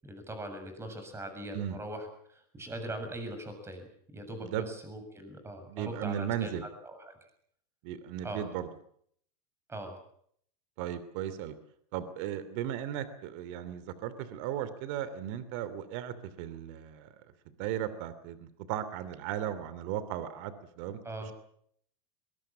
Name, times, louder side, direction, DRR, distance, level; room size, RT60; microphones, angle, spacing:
voice 1, 0.0-7.1 8.2-8.4 9.7-10.0 21.0-21.3, right 1 dB, 15° right, 7 dB, 6.9 m, -41 dB
voice 2, 5.7-6.7 7.8-8.7 10.8-11.6 11.9-17.1 17.6-21.3, right 10 dB, 55° right, 14 dB, 2.9 m, -36 dB
22.5 x 22.0 x 7.4 m, 0.64 s
supercardioid pair, 135°, 20 cm